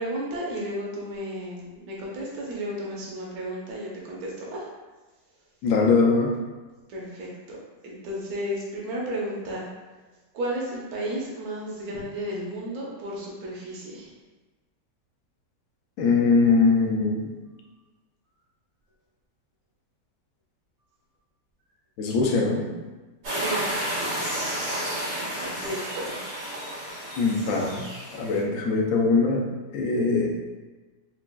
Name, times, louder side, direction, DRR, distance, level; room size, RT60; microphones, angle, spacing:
voice 1, 0.0-4.6 6.9-7.6 7.8-9.7 10.3-14.1 23.3-23.7 25.4-26.5, right 1 dB, 60° right, -4 dB, 1.3 m, -33 dB
voice 2, 5.6-6.3 16.0-17.3 22.0-22.7 27.2-27.8 28.1-29.5 29.7-30.3, left 4 dB, 65° left, 0 dB, 1.0 m, -21 dB
sound 1, 23.2-28.4, right 1 dB, 85° right, 2.0 m, -31 dB
5.9 x 2.4 x 2.3 m, 1.2 s
omnidirectional pair, 1.8 m